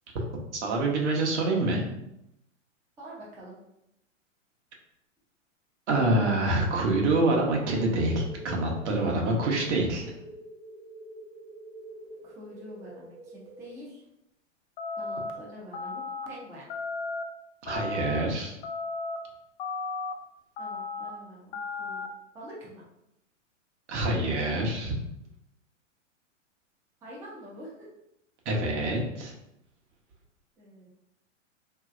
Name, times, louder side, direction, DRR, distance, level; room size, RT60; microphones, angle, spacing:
voice 1, 0.5-1.8 5.9-10.1 17.6-18.6 23.9-24.9 28.4-29.3, right 2 dB, 65° right, -1 dB, 0.9 m, -26 dB
voice 2, 3.0-3.6 12.2-14.0 15.0-16.7 20.6-22.1 22.3-22.8 27.0-27.9 30.6-30.9, equal, 10° right, -5 dB, 0.4 m, -46 dB
sound 1, 7.3-13.7, right 1 dB, 25° right, 1.0 m, -46 dB
sound 2, 14.8-15.3 15.7-16.3 16.7-17.2 17.7-18.2 18.6-19.2 19.6-20.1 20.6-21.1 21.5-22.1, left 3 dB, 50° left, 0.5 m, -34 dB
3.1 x 2.7 x 2.4 m, 0.83 s
hypercardioid pair, 120°, 38 cm